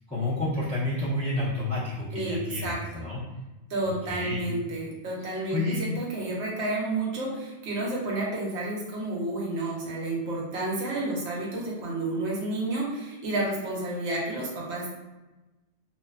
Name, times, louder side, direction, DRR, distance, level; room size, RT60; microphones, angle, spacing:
voice 1, 0.1-3.2 3.8-4.4 5.3-5.8, left 2 dB, 5° left, -9 dB, 0.7 m, -30 dB
voice 2, 3.7-7.3 7.7-12.9 13.2-14.9, right 2 dB, 85° right, -3 dB, 1.0 m, -30 dB
2.6 x 2.1 x 2.3 m, 1.1 s
omnidirectional pair, 1.1 m